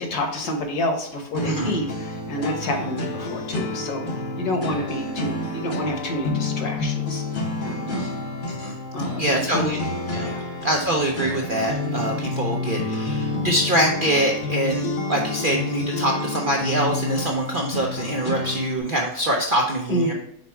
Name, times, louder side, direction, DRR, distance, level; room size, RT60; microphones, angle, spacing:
voice 1, 0.0-4.0 4.4-7.2 7.6-8.1 8.9-9.7 10.2-10.4 19.9-20.1, left 1 dB, 65° left, 3 dB, 1.6 m, -28 dB
sound 1, 1.3-18.8, left 2 dB, 40° left, 0.7 m, -29 dB
voice 2, 1.4-1.8 8.0-8.1 8.5-8.8 9.2-9.8 10.1-10.3 10.6-20.1, right 1 dB, 75° right, 0 dB, 0.4 m, -24 dB
5.1 x 4.3 x 4.6 m, 0.73 s
omnidirectional pair, 1.9 m